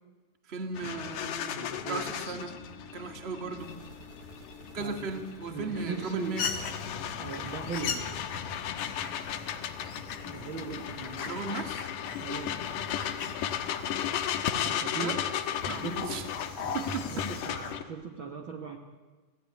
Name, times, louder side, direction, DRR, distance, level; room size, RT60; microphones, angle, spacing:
voice 1, 0.5-2.6 2.9-3.8 4.7-6.5 11.2-11.9 14.9-15.2 15.7-16.2 16.6-17.3, right 3 dB, 25° right, 5 dB, 1.8 m, -37 dB
sound 1, 0.8-17.8, left 10 dB, 80° left, 2.8 m, -36 dB
voice 2, 1.5-2.1 4.8-5.2 5.5-6.5 7.2-8.1 10.3-11.3 12.2-12.6 14.6-15.2 15.6-16.2 16.9-18.8, right 5 dB, 45° right, 2 dB, 1.8 m, -39 dB
sound 2, 3.6-17.8, right 5 dB, 90° right, 4.0 m, -55 dB
sound 3, 6.4-17.8, left 6 dB, 55° left, 2.6 m, -39 dB
29.5 x 17.0 x 9.8 m, 1.3 s
omnidirectional pair, 3.8 m